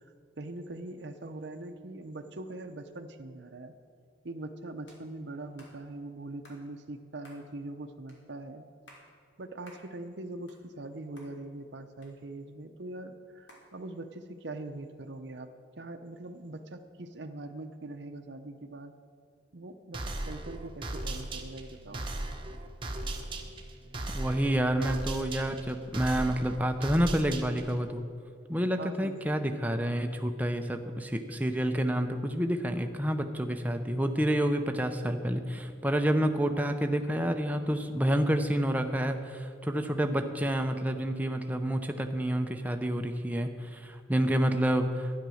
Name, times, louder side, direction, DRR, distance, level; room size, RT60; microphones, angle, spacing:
voice 1, 0.4-3.7 4.2-8.7 9.4-15.5 15.8-18.9 19.5-22.1 28.8-29.2, right 2 dB, 60° right, 6 dB, 0.7 m, -42 dB
sound 1, 4.9-5.0 5.6-5.8 6.4-6.6 7.2-7.4 8.1-8.2 8.7-9.1 9.6-9.9 10.3-10.9 11.2-11.3 12.0-12.6 13.5-13.7, left 1 dB, 70° left, 2.8 m, -55 dB
sound 2, 19.9-27.8, right 2 dB, 25° right, 1.0 m, -37 dB
voice 2, 24.1-28.1 28.5-45.1, equal, 10° right, 5 dB, 0.6 m, -29 dB
12.0 x 10.5 x 6.4 m, 2.3 s
head